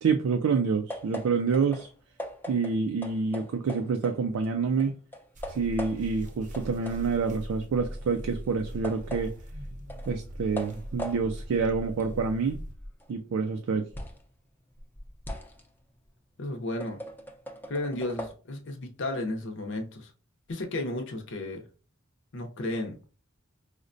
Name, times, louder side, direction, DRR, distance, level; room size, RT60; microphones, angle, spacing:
voice 1, 0.0-1.9 2.5-5.0 5.5-9.4 10.1-12.6 13.1-13.9, right 5 dB, 85° right, 0.4 m, -27 dB
sound 1, 0.9-4.5 4.8-6.3 6.5-14.3 14.7-18.3, equal, 10° left, 0.5 m, -41 dB
sound 2, 5.3-12.7, equal, 40° right, 0.6 m, -41 dB
voice 2, 16.4-17.0 17.7-20.1 20.5-21.7 22.3-23.0, left 2 dB, 60° left, 0.6 m, -33 dB
4.9 x 2.1 x 2.5 m
head